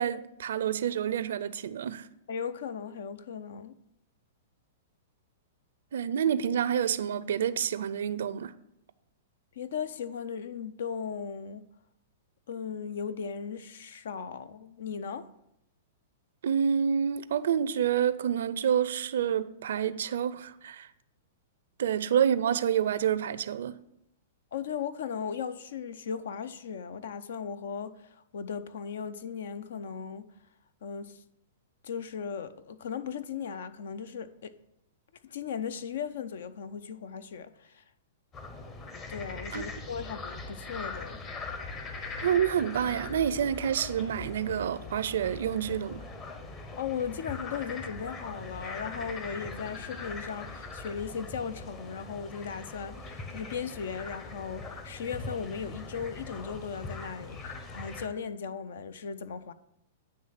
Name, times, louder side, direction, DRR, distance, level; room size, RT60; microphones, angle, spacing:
voice 1, 0.0-2.1 5.9-8.5 16.4-20.9 21.8-23.7 39.5-39.6 42.2-46.0, right 8 dB, 75° right, 0.4 m, -28 dB
voice 2, 2.3-3.7 9.6-11.6 12.5-15.3 24.5-30.3 30.8-31.2 31.8-34.5 35.2-37.8 39.1-41.2 46.8-59.5, left 7 dB, 75° left, 0.5 m, -37 dB
sound 1, 38.3-58.1, left 3 dB, 25° left, 0.8 m, -41 dB
9.3 x 3.2 x 5.7 m
hypercardioid pair, 130°, 0 cm